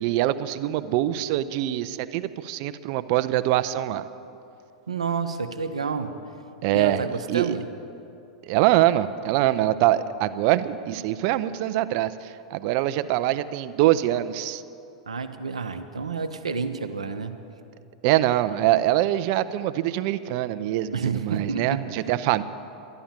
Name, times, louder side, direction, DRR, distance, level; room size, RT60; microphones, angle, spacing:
voice 1, 0.0-4.1 6.6-7.0 7.3-7.6 8.5-14.6 18.0-22.4, right 14 dB, 50° right, 14 dB, 0.6 m, -24 dB
voice 2, 4.9-6.1 6.7-7.7 15.1-17.4 20.9-21.9, right 5 dB, 85° right, 8 dB, 0.8 m, -29 dB
12.0 x 11.0 x 7.4 m, 2.7 s
hypercardioid pair, 95°, 3 cm